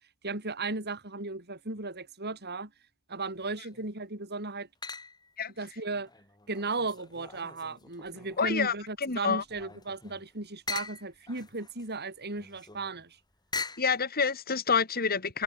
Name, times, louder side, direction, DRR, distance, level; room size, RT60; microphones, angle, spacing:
voice 1, 0.2-2.7 3.1-4.7 5.6-6.1 6.5-13.2, right 3 dB, 50° right, 6.3 m, -36 dB
sound 1, 3.3-3.9 4.8-5.4 5.9-8.6 9.0-14.0, left 4 dB, 20° left, 4.2 m, -42 dB
voice 2, 8.4-8.7 9.0-9.4 13.8-15.4, left 5 dB, 45° left, 2.3 m, -27 dB
head